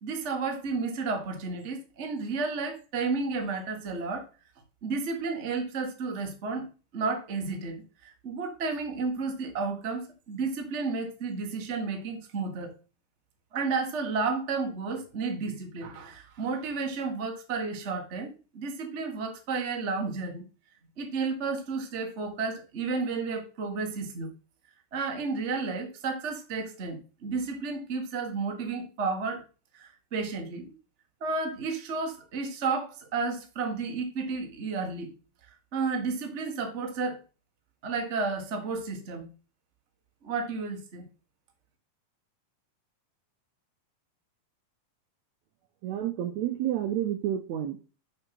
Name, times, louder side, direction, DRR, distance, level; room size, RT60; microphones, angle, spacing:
voice 1, 0.0-4.3 4.8-6.7 6.9-12.8 13.5-20.4 21.0-24.3 24.9-29.4 29.7-30.7 31.2-35.1 35.7-37.2 37.8-39.3 40.2-41.0, right 4 dB, 65° right, 3 dB, 0.7 m, -32 dB
voice 2, 45.8-47.8, right 11 dB, 80° right, 7 dB, 1.6 m, -30 dB
6.8 x 5.5 x 5.9 m, 0.34 s
omnidirectional pair, 4.1 m